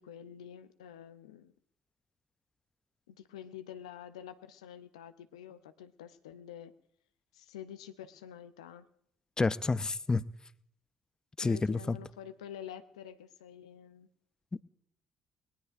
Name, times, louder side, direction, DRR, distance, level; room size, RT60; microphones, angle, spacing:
voice 1, 0.0-1.5 3.1-6.7 7.3-8.9 11.4-14.1, left 9 dB, 85° left, 0.5 m, -48 dB
voice 2, 9.4-10.2 11.4-12.0, left 3 dB, 25° left, 0.5 m, -29 dB
19.5 x 18.5 x 2.6 m
hypercardioid pair, 50°, 3 cm